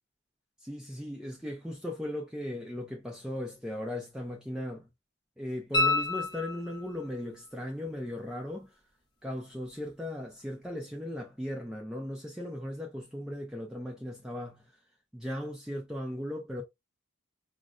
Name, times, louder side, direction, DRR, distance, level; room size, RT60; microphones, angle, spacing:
voice 1, 0.6-4.9 5.4-8.7 9.2-14.7 15.1-16.6, left 1 dB, 5° right, 0.4 m, -37 dB
sound 1, 5.7-7.1 9.9-10.0, left 2 dB, 20° left, 0.8 m, -29 dB
4.8 x 2.1 x 2.3 m
head